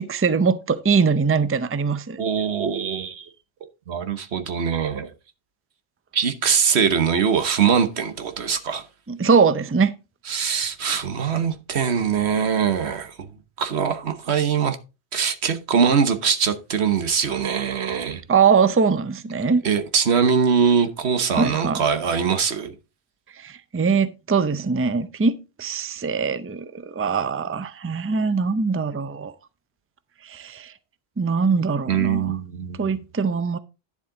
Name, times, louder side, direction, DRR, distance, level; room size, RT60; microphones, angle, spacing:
voice 1, 0.0-2.2 9.1-9.9 18.3-19.6 21.4-21.8 23.4-26.7 27.0-29.3 30.2-30.7 31.2-32.3 32.8-33.6, right 5 dB, 20° right, 0.4 m, -22 dB
voice 2, 2.2-3.3 3.9-5.1 6.1-8.8 10.3-13.3 13.6-14.8 15.1-18.2 19.6-22.7 31.9-33.0, right 6 dB, 75° right, 1.3 m, -22 dB
10.5 x 7.3 x 3.8 m
omnidirectional pair, 1.1 m